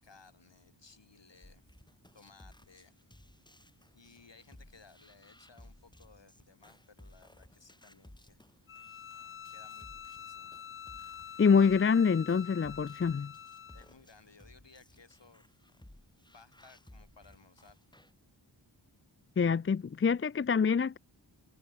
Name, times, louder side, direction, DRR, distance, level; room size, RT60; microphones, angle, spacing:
voice 1, 0.0-1.6 2.1-3.0 3.9-8.4 9.4-10.6 13.7-15.5 16.2-17.8, left 4 dB, 65° left, 7.3 m, -60 dB
sound 1, 1.4-18.1, left 1 dB, 10° left, 2.1 m, -59 dB
Bowed string instrument, 8.7-13.9, left 8 dB, 90° left, 1.2 m, -46 dB
voice 2, 11.4-13.3 19.4-21.0, left 6 dB, 30° left, 0.5 m, -26 dB
cardioid pair, 50°, 46 cm